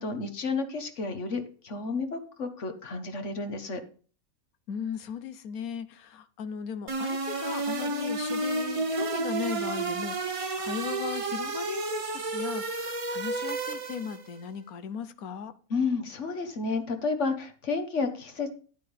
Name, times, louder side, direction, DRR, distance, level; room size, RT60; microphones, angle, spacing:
voice 1, 0.0-3.8 15.7-18.5, left 4 dB, 55° left, 1.5 m, -31 dB
voice 2, 4.7-15.5, left 8 dB, 75° left, 1.2 m, -37 dB
sound 1, 6.9-14.3, right 3 dB, 30° right, 0.6 m, -31 dB
10.5 x 8.4 x 3.4 m
omnidirectional pair, 1.6 m